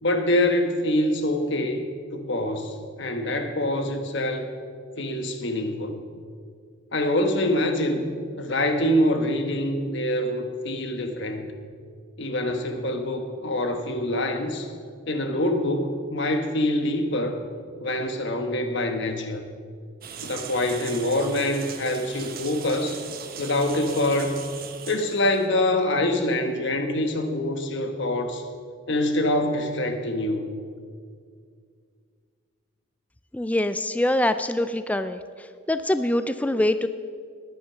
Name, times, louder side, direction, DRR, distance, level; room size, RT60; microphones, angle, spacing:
voice 1, 0.0-4.5 5.0-6.0 6.9-8.1 8.4-11.5 12.2-14.7 15.1-17.5 17.8-19.4 20.2-23.0 23.4-24.4 24.9-28.4 28.9-30.6, left 1 dB, 55° left, 6 dB, 1.3 m, -25 dB
sound 1, 20.0-25.5, right 7 dB, 45° right, 1.1 m, -39 dB
voice 2, 33.3-35.2 35.7-36.9, left 1 dB, 5° left, 11 dB, 0.3 m, -24 dB
19.5 x 9.6 x 5.7 m, 2.2 s
head